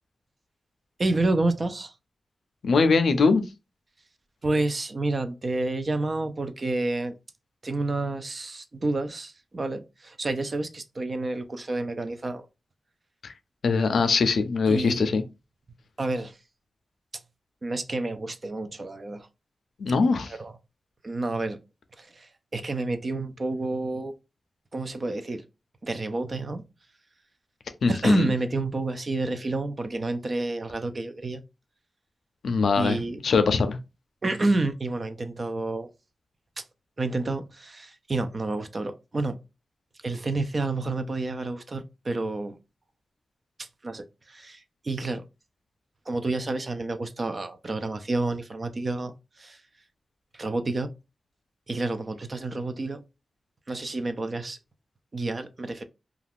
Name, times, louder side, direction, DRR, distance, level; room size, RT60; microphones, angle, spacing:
voice 1, 1.0-1.9 4.4-7.1 7.6-12.5 14.7-15.0 16.0-16.4 17.6-19.3 20.4-20.5 21.0-21.6 22.0-24.1 24.7-25.4 25.8-26.6 27.9-31.4 32.8-33.2 34.2-35.9 36.6-36.7 37.0-39.4 40.0-42.6 43.6-45.2 46.1-49.6 50.3-50.9 51.7-53.0 53.7-54.6 55.1-55.8, right 2 dB, 45° right, 0.4 m, -29 dB
voice 2, 2.6-3.4 13.2-13.3 13.6-15.2 19.8-20.3 27.8-28.3 32.4-33.8, left 4 dB, 90° left, 0.4 m, -22 dB
2.4 x 2.3 x 3.3 m
wide cardioid pair, 75°, 0 cm